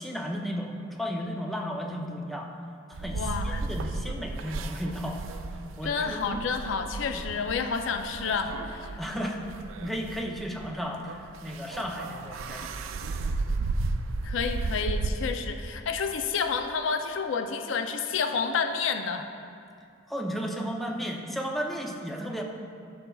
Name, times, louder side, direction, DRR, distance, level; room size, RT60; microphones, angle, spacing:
voice 1, 0.0-2.5 2.9-5.4 5.8-6.4 7.1-7.2 9.0-9.4 9.8-13.3 20.1-22.4, equal, ahead, 0 dB, 0.5 m, -34 dB
sound 1, 2.9-15.1, right 3 dB, 85° right, 0.4 m, -34 dB
voice 2, 3.1-3.7 5.8-9.0 14.2-19.3, left 5 dB, 70° left, 7 dB, 0.4 m, -30 dB
11.0 x 6.7 x 2.3 m, 2.3 s
head